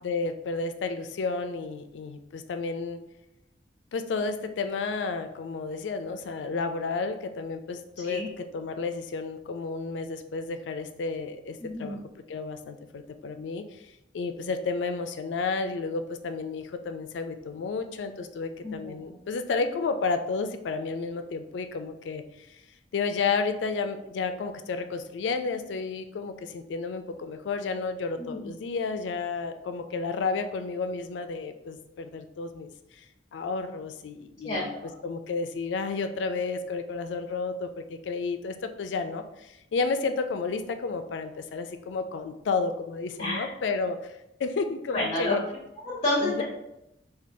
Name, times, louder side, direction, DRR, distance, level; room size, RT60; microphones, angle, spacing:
voice 1, 0.0-3.0 3.9-12.0 12.3-13.8 14.1-22.6 22.9-33.1 33.3-34.7 35.0-45.4 46.2-46.4, left 4 dB, 90° left, 8 dB, 0.3 m, -32 dB
voice 2, 11.6-12.0 18.6-19.1 28.2-28.4 34.4-34.9 43.2-43.5 44.9-45.4 45.8-46.4, left 1 dB, 35° left, -6 dB, 0.7 m, -30 dB
4.4 x 2.3 x 2.6 m, 0.87 s
head